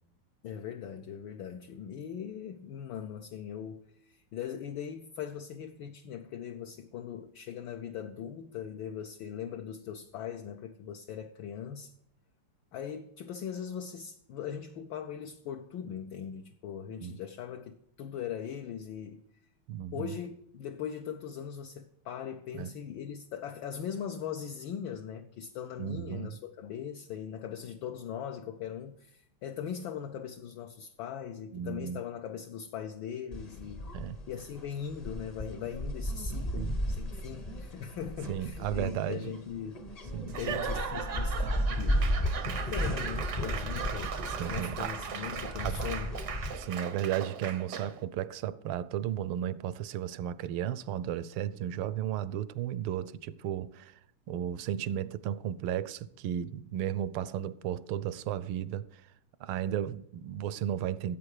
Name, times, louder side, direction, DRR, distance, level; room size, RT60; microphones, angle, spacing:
voice 1, 0.4-11.9 12.7-19.2 19.9-33.8 34.3-39.8 40.2-42.1 42.4-44.1 44.5-46.3, left 8 dB, 70° left, 1.4 m, -40 dB
voice 2, 19.7-20.1 22.5-22.7 25.8-26.3 31.5-32.0 33.9-34.2 36.5-36.8 38.3-39.3 40.1-40.6 44.4-44.9 45.6-45.9 46.6-53.9 54.3-59.0 59.4-61.2, right 10 dB, 80° right, 1.5 m, -34 dB
sound 1, 33.3-46.5, equal, 25° left, 0.8 m, -34 dB
Laughter / Applause / Crowd, 40.3-48.0, right 7 dB, 60° right, 0.8 m, -38 dB
14.5 x 8.3 x 4.9 m
omnidirectional pair, 2.4 m